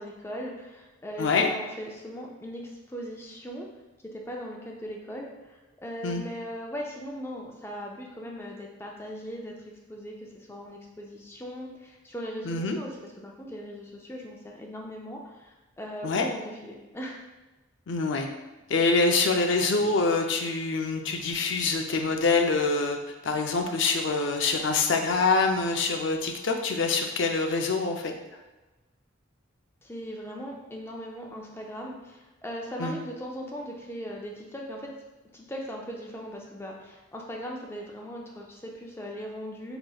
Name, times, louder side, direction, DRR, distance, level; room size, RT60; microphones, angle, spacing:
voice 1, 0.0-3.7 4.1-17.2 29.8-34.9 35.3-39.8, equal, 10° left, -1 dB, 0.5 m, -39 dB
voice 2, 1.2-1.5 6.0-6.2 12.4-12.8 16.0-16.3 17.9-18.3 18.7-23.0 23.2-28.1 32.8-33.0, left 3 dB, 65° left, 4 dB, 0.4 m, -25 dB
4.7 x 2.9 x 2.3 m, 1.1 s
head